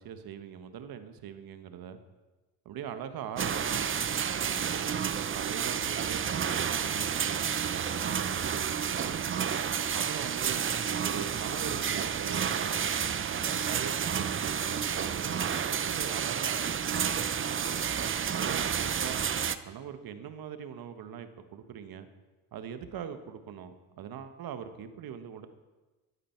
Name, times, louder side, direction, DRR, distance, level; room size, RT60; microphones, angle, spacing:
voice 1, 0.0-2.0 2.6-3.9 4.4-5.0 5.3-9.5 9.9-10.7 11.0-12.9 13.3-17.8 18.3-19.2 19.6-22.1 22.5-25.5, right 8 dB, 60° right, 9 dB, 1.4 m, -42 dB
sound 1, 3.4-19.6, right 7 dB, 30° right, 0.7 m, -30 dB
14.0 x 11.5 x 4.6 m, 1.2 s
supercardioid pair, 70°, 41 cm